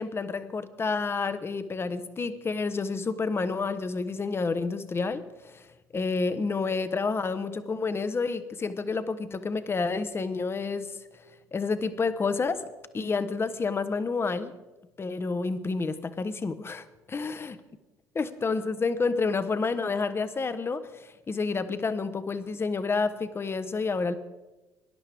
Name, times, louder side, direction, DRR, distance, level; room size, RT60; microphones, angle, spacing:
voice 1, 0.0-5.7 5.9-10.9 11.5-12.6 12.9-14.5 15.0-17.5 18.1-24.1, left 4 dB, 30° left, 13 dB, 0.9 m, -29 dB
18.5 x 11.0 x 3.5 m, 1.1 s
hypercardioid pair, 65°, 9 cm